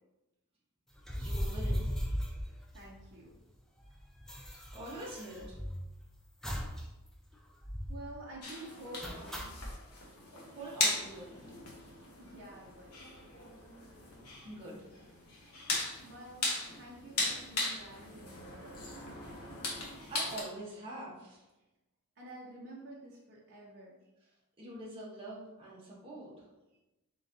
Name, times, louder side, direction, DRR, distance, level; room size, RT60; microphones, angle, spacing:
sound 1, 1.0-3.3 3.5-3.6 3.8-5.9 6.4-6.9 7.1-7.2 7.6-8.1 9.0-9.7, equal, ahead, 0.4 m, -37 dB
voice 1, 1.2-2.2 4.7-5.6 10.4-11.6 14.4-14.9 19.1-19.5 20.1-21.5 24.2-24.3 24.6-26.5, right 1 dB, 25° right, -7 dB, 0.9 m, -45 dB
voice 2, 2.7-3.3 7.9-9.5 12.2-13.0 16.0-18.7 22.2-24.0, right 1 dB, 50° right, -5 dB, 0.7 m, -49 dB
sound 2, 8.4-20.4, left 2 dB, 80° left, 1.0 m, -38 dB
3.9 x 3.8 x 2.6 m, 1.0 s
head